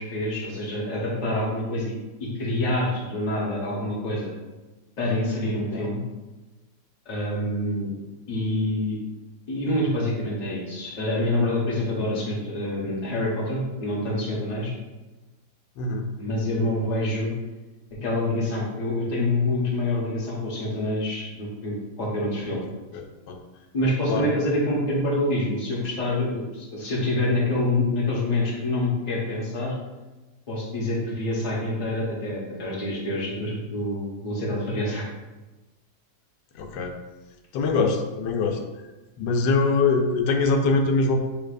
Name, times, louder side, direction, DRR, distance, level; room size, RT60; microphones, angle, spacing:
voice 1, 0.0-1.9 2.2-4.3 5.0-6.0 7.0-7.9 8.3-9.0 9.5-14.7 16.2-17.3 18.0-22.6 23.7-29.7 30.5-35.1, left 1 dB, 30° left, -5 dB, 1.0 m, -26 dB
voice 2, 15.8-16.1 22.9-23.4 24.1-24.3 36.5-37.0 37.5-38.6 39.2-41.4, left 3 dB, 90° left, 4 dB, 1.3 m, -23 dB
6.6 x 3.2 x 2.5 m, 1.1 s
omnidirectional pair, 1.9 m